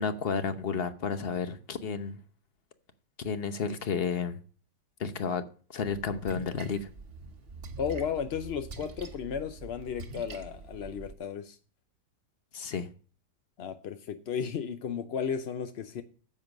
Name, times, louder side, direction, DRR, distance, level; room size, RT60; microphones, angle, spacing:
voice 1, 0.0-2.2 3.2-4.4 5.0-5.4 5.7-6.9 12.5-12.9, left 5 dB, 45° left, 0.9 m, -31 dB
Splash splatter, 5.8-11.1, right 3 dB, 40° right, 1.0 m, -45 dB
voice 2, 7.8-11.6 13.6-16.0, left 7 dB, 70° left, 0.6 m, -34 dB
9.8 x 7.7 x 5.2 m
omnidirectional pair, 2.0 m